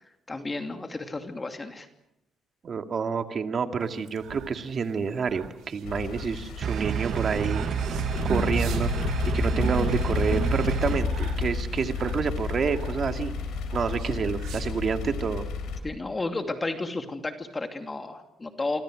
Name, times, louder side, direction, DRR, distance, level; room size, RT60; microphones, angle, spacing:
voice 1, 0.3-1.9 15.8-18.8, left 2 dB, 25° left, 6 dB, 2.7 m, -32 dB
voice 2, 2.6-7.7 8.2-8.9 9.3-13.3 13.7-15.4, right 5 dB, 50° right, 7 dB, 2.2 m, -28 dB
sound 1, 3.9-15.1, right 6 dB, 80° right, 3.7 m, -41 dB
sound 2, 5.8-15.8, left 5 dB, 85° left, 4.1 m, -31 dB
sound 3, 6.6-11.0, right 8 dB, 65° right, 1.6 m, -29 dB
27.5 x 25.5 x 6.4 m, 0.82 s
cardioid pair, 90°, 0 cm